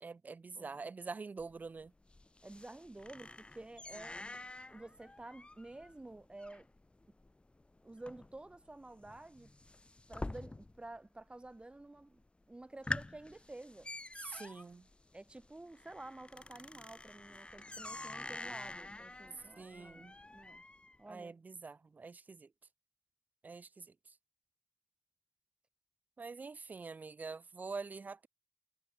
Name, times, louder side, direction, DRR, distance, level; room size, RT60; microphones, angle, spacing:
voice 1, 0.0-1.9 14.2-14.9 19.6-20.2 21.1-22.5 23.4-23.9 26.2-28.3, right 4 dB, 60° right, 0.6 m, -45 dB
voice 2, 0.5-0.9 2.4-4.2 4.7-6.7 7.8-9.5 10.1-12.2 12.5-13.9 15.1-20.6 21.0-21.4, right 2 dB, 30° right, 3.4 m, -51 dB
sound 1, 1.4-11.0 11.2-11.8 12.2-12.3 12.6-21.0, left 2 dB, 35° left, 2.9 m, -47 dB
cardioid pair, 40°, 3 cm